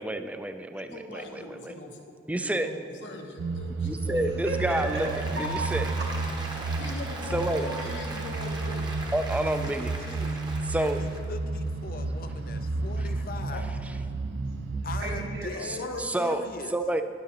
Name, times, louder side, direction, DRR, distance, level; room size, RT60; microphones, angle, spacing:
voice 1, 0.0-1.7 2.3-2.7 3.8-5.1 5.4-5.9 7.3-7.7 9.1-9.9 10.7-11.0 16.0-16.4 16.7-17.0, right 1 dB, 10° right, 8 dB, 0.3 m, -29 dB
voice 2, 0.9-2.0 2.4-4.3 6.8-8.9 13.5-13.6 15.5-16.1 16.3-16.7, left 1 dB, 90° left, 1 dB, 1.2 m, -40 dB
sound 1, 3.4-15.5, right 3 dB, 80° right, 0.4 m, -32 dB
voice 3, 4.4-5.1 5.3-6.6 14.4-15.6, right 1 dB, 60° right, -2 dB, 1.6 m, -35 dB
Applause, 4.5-11.2, right 2 dB, 25° right, 0.9 m, -39 dB
voice 4, 9.3-10.5 10.8-13.8 14.8-15.9 16.2-16.8, left 4 dB, 50° left, 8 dB, 0.5 m, -41 dB
12.0 x 10.0 x 2.9 m, 2.2 s
head